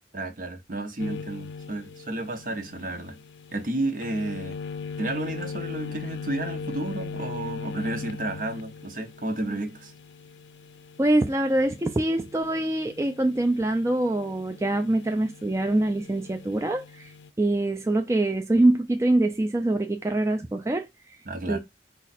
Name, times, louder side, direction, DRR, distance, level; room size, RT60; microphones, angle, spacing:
voice 1, 0.1-3.2 3.5-4.6 5.0-9.9 21.3-21.6, right 2 dB, 50° right, 0.8 m, -32 dB
sound 1, 1.0-17.3, left 4 dB, 85° left, 0.4 m, -40 dB
voice 2, 11.0-21.2 21.5-21.6, right 1 dB, 15° right, 0.4 m, -24 dB
5.0 x 2.4 x 4.1 m
head